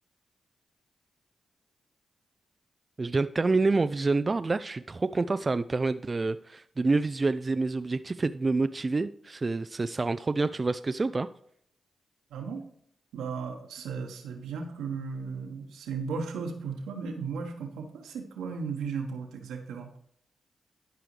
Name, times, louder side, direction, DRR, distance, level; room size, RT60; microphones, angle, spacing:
voice 1, 3.0-11.3, right 3 dB, 40° right, 11 dB, 0.4 m, -27 dB
voice 2, 12.3-12.7 13.1-19.9, right 5 dB, 85° right, 3 dB, 1.3 m, -35 dB
12.0 x 4.9 x 3.2 m, 0.67 s
supercardioid pair, 40°, 0 cm